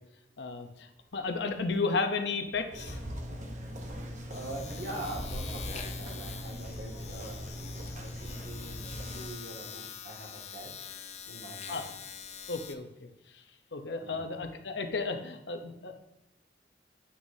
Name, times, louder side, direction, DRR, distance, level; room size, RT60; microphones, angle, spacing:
voice 1, 0.4-3.0 11.7-11.8 12.5-13.1 13.3-13.4 13.7-16.0, left 4 dB, 75° left, 5 dB, 0.8 m, -33 dB
Domestic sounds home sounds, 1.0-1.2 1.5-12.7, left 7 dB, 35° left, 0.6 m, -45 dB
sound 1, 2.7-9.3, equal, 40° right, 1.0 m, -40 dB
voice 2, 4.3-8.8 9.1-10.7 11.3-11.9 14.0-14.3, right 1 dB, 75° right, -4 dB, 2.1 m, -43 dB
9.5 x 6.3 x 2.8 m, 0.87 s
head